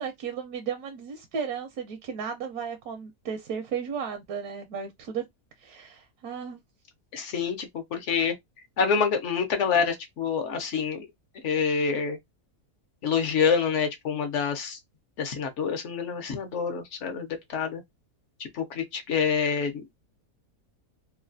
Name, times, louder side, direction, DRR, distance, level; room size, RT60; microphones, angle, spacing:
voice 1, 0.0-5.2 5.6-6.6, right 7 dB, 80° right, 1.1 m, -34 dB
voice 2, 7.1-8.3 8.8-11.1 11.4-12.2 13.0-14.8 15.2-17.8 18.4-19.8, left 6 dB, 60° left, 0.9 m, -27 dB
3.1 x 2.3 x 2.5 m
omnidirectional pair, 1.7 m